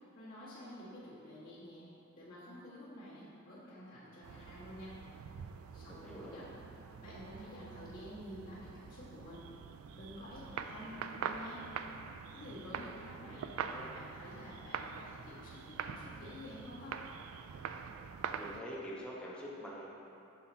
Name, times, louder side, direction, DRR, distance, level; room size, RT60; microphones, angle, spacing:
voice 1, 0.1-5.0 5.7-6.6 7.0-9.5 9.9-11.7 12.3-13.5 13.9-17.0, left 1 dB, 45° left, -11 dB, 1.5 m, -50 dB
sound 1, 4.2-18.6, right 7 dB, 85° right, 0.3 m, -45 dB
voice 2, 5.9-6.4 13.2-13.9 18.3-19.9, equal, 5° left, -6 dB, 1.0 m, -46 dB
7.5 x 5.8 x 2.8 m, 2.6 s
head